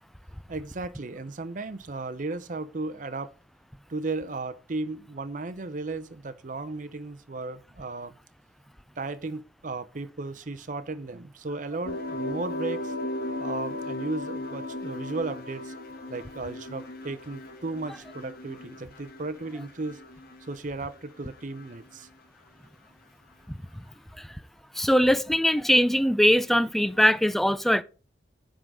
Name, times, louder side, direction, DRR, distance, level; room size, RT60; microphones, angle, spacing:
voice 1, 0.5-3.3 3.9-8.1 9.0-12.9 13.4-15.7 16.1-20.0 20.5-22.1, right 3 dB, 45° right, 0.7 m, -35 dB
sound 1, 11.8-21.0 21.3-22.0, left 1 dB, 55° left, 1.5 m, -37 dB
voice 2, 24.8-27.8, equal, ahead, 0.4 m, -21 dB
10.0 x 3.8 x 6.2 m
head